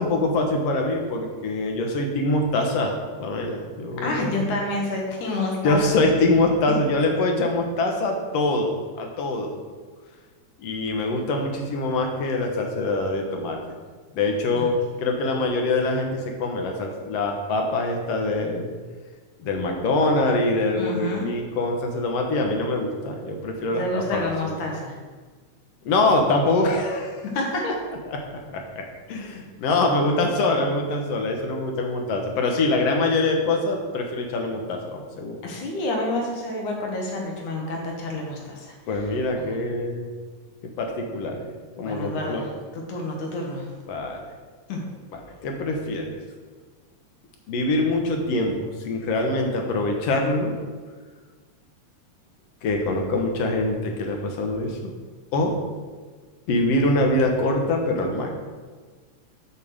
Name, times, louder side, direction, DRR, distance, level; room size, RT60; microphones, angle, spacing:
voice 1, 0.0-4.5 5.6-9.6 10.6-13.6 14.1-18.7 19.4-24.6 25.9-27.2 27.6-27.7 28.1-35.4 38.9-40.1 40.8-41.5 41.8-42.4 43.9-44.2 45.4-46.1 47.5-50.5 52.6-54.9 55.3-55.6 56.5-58.3, left 2 dB, 65° left, 2 dB, 2.0 m, -24 dB
voice 2, 4.0-6.0 6.7-6.8 14.5-14.7 20.8-21.3 23.7-25.0 27.3-27.6 35.4-39.1 39.4-39.6 41.8-43.7 44.7-44.8, left 2 dB, 85° left, 0 dB, 2.8 m, -29 dB
7.4 x 5.3 x 6.5 m, 1.4 s
omnidirectional pair, 3.4 m